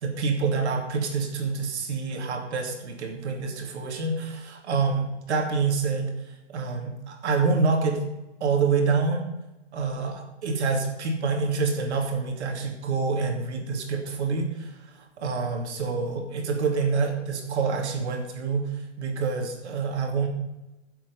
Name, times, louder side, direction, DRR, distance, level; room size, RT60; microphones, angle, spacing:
voice 1, 0.0-6.1 6.5-8.1 8.4-9.2 9.7-14.8 15.2-20.3, right 4 dB, 65° right, 3 dB, 2.8 m, -27 dB
15.5 x 7.8 x 5.3 m, 1.0 s
hypercardioid pair, 165°, 36 cm